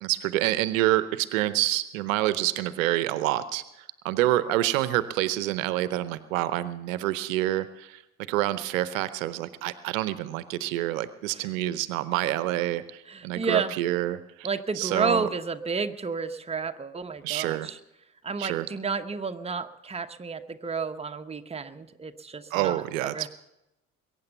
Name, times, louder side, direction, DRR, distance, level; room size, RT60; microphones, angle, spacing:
voice 1, 0.0-3.6 4.0-8.0 8.3-14.5 14.8-15.2 17.2-17.7 18.4-18.7 22.5-23.3, right 15 dB, 65° right, 16 dB, 0.7 m, -27 dB
voice 2, 13.1-13.8 14.4-17.8 18.2-23.3, right 5 dB, 15° right, 8 dB, 1.0 m, -31 dB
22.0 x 9.0 x 6.8 m, 0.90 s
figure-of-eight pair, 55°, 42 cm